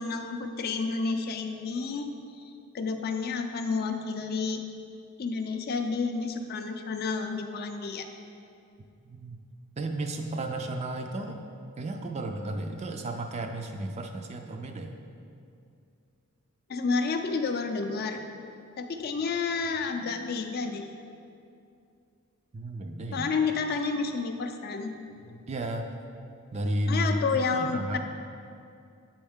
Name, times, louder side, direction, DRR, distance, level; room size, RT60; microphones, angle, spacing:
voice 1, 0.0-2.1 2.4-4.6 5.2-8.1 16.7-18.2 18.8-20.9 23.1-25.4 26.9-28.0, left 4 dB, 45° left, 6 dB, 0.4 m, -30 dB
voice 2, 9.1-9.4 9.8-11.4 11.8-14.9 22.5-23.3 25.5-25.9 26.5-28.0, right 1 dB, 30° right, 4 dB, 0.3 m, -33 dB
7.8 x 4.3 x 3.6 m, 2.5 s
head